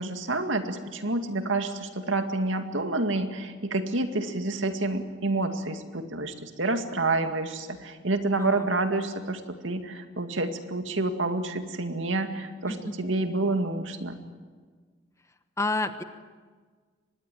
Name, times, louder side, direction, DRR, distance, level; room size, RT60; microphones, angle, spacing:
voice 1, 0.0-14.1, right 2 dB, 80° right, 6 dB, 2.2 m, -28 dB
voice 2, 8.4-8.7 12.7-12.9 15.6-16.0, left 2 dB, 15° left, 9 dB, 1.1 m, -29 dB
24.5 x 20.5 x 9.3 m, 1.5 s
head